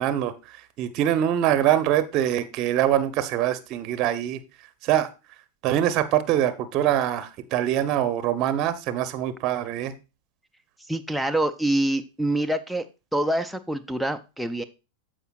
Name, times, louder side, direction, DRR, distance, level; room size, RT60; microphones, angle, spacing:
voice 1, 0.0-4.4 4.8-5.1 5.6-9.9, right 11 dB, 40° right, 12 dB, 0.8 m, -24 dB
voice 2, 10.9-12.8 13.1-14.6, right 1 dB, ahead, 6 dB, 0.5 m, -25 dB
13.5 x 4.9 x 2.4 m, 0.29 s
figure-of-eight pair, 90°, 0 cm